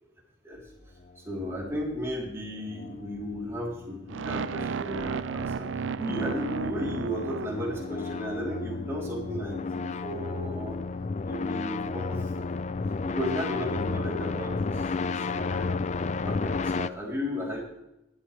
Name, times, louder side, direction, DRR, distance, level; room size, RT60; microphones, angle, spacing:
voice 1, 1.2-5.7 6.0-10.8 11.2-12.3 13.1-15.8 16.2-17.6, equal, 15° right, -4 dB, 3.4 m, -34 dB
sound 1, 2.3-16.9, left 4 dB, 35° left, 0.4 m, -33 dB
sound 2, 4.1-8.2, right 6 dB, 75° right, 0.4 m, -34 dB
22.0 x 8.9 x 3.3 m, 0.88 s
head